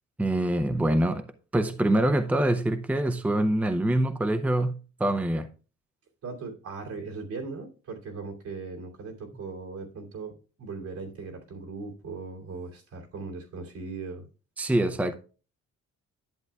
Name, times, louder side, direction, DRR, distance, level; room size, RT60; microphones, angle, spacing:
voice 1, 0.2-1.2 1.5-5.5 14.6-15.2, right 1 dB, 5° right, 0.6 m, -25 dB
voice 2, 6.2-14.2, right 4 dB, 75° right, 2.8 m, -39 dB
11.0 x 7.8 x 2.3 m
cardioid pair, 90°, 30 cm